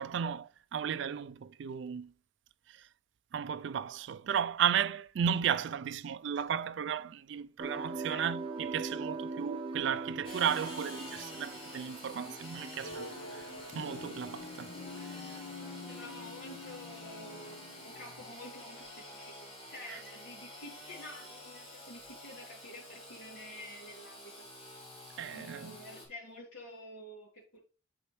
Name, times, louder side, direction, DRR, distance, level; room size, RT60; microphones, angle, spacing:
voice 1, 0.0-2.1 2.7-2.9 3.3-13.5 13.7-14.8 19.9-20.0 25.2-25.8, right 8 dB, 65° right, 0.3 m, -34 dB
sound 1, 7.6-16.7 17.0-17.7, right 3 dB, 25° right, 1.0 m, -43 dB
voice 2, 7.9-8.3 15.9-24.5 25.2-27.6, left 1 dB, 75° left, 2.6 m, -49 dB
Engine / Sawing, 10.2-26.1, left 1 dB, 25° left, 2.2 m, -49 dB
sound 2, 12.8-18.3, left 3 dB, 55° left, 0.6 m, -47 dB
8.6 x 4.3 x 3.1 m
head